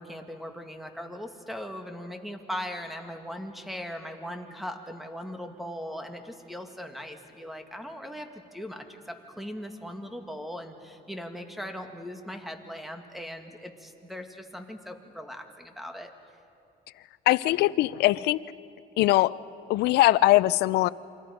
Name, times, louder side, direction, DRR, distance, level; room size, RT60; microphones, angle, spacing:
voice 1, 0.0-16.1, equal, ahead, 5 dB, 1.9 m, -39 dB
voice 2, 17.3-18.4 19.0-19.4 19.7-20.9, left 17 dB, 80° left, 18 dB, 0.5 m, -21 dB
28.5 x 24.5 x 5.1 m, 2.6 s
cardioid pair, 110°, 17 cm